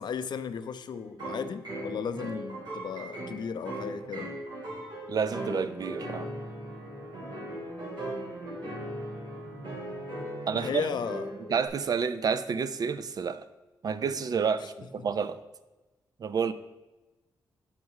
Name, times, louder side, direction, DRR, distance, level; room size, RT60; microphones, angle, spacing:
voice 1, 0.0-4.3 10.5-11.2 15.0-15.1, left 6 dB, 65° left, 11 dB, 0.5 m, -35 dB
sound 1, 0.9-11.7, right 1 dB, 70° right, 2.6 m, -38 dB
voice 2, 5.1-6.3 10.5-10.7 11.5-13.4 13.8-15.4 16.2-16.5, right 6 dB, 55° right, 13 dB, 0.5 m, -29 dB
7.3 x 5.4 x 4.7 m, 1.1 s
cardioid pair, 70°, 8 cm